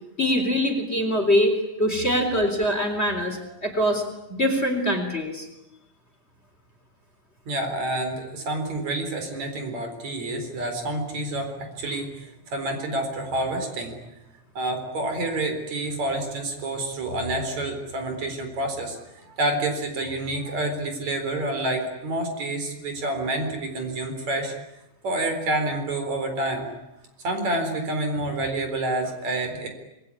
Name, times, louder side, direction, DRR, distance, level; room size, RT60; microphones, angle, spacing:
voice 1, 0.2-1.5 1.8-4.0 4.3-5.5, equal, 20° left, 5 dB, 3.9 m, -23 dB
voice 2, 7.5-13.9 14.6-24.5 25.0-26.7 27.2-29.7, right 2 dB, 65° right, 6 dB, 5.4 m, -28 dB
26.5 x 21.5 x 9.9 m, 0.92 s
omnidirectional pair, 3.4 m